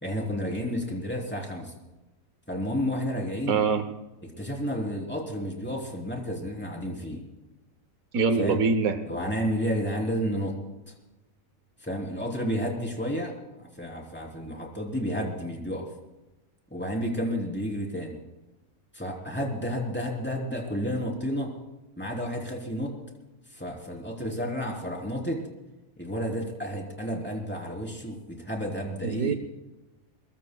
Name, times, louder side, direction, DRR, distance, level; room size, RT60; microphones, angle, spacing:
voice 1, 0.0-1.7 2.5-3.6 4.4-7.2 8.4-8.6 9.1-10.5 10.9-11.0 11.8-15.9 16.7-18.2 18.9-21.5 22.0-22.9 23.5-25.4 26.0-29.4, equal, 10° left, -1 dB, 3.5 m, -31 dB
voice 2, 3.5-3.8 8.1-9.0 29.0-29.3, right 5 dB, 85° right, 9 dB, 1.4 m, -24 dB
23.0 x 22.0 x 2.3 m, 1.0 s
omnidirectional pair, 1.4 m